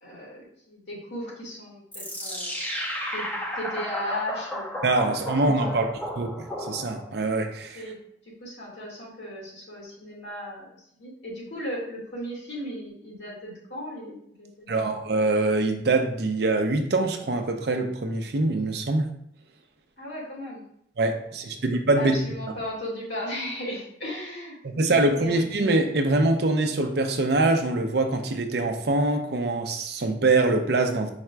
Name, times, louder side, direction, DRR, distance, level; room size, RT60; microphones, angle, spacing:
voice 1, 0.0-2.5 3.1-3.3 3.6-4.7 5.6-5.9 7.8-8.0 8.4-10.7 10.9-14.8 20.0-20.6 21.5-21.6 22.0-24.5 25.0-25.4, left 1 dB, 70° left, -5 dB, 1.8 m, -36 dB
sound 1, 1.9-7.2, equal, 10° left, 0.5 m, -33 dB
voice 2, 4.8-5.9 6.2-7.8 14.7-19.1 21.0-22.2 24.6-31.1, right 2 dB, 55° right, 4 dB, 0.5 m, -24 dB
4.9 x 2.2 x 4.4 m, 0.72 s
head